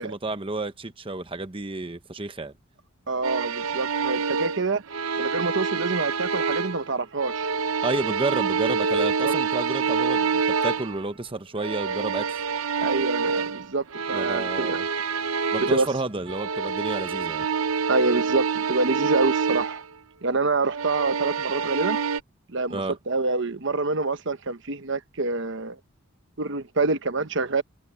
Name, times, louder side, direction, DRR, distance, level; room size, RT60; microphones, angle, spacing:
voice 1, 0.0-2.5 7.8-12.4 14.1-14.9 15.5-17.5 22.7-23.0, right 2 dB, 25° right, 1.0 m, -31 dB
voice 2, 3.1-4.8 5.2-7.5 9.2-9.3 12.8-14.8 15.6-15.9 17.9-19.8 20.2-22.0 22.5-22.8 23.1-25.8 26.4-27.6, right 3 dB, 60° right, 1.1 m, -26 dB
sound 1, 3.2-6.9 7.2-11.1 11.6-16.0 16.3-19.8 20.6-22.2, right 5 dB, 80° right, 0.8 m, -27 dB
head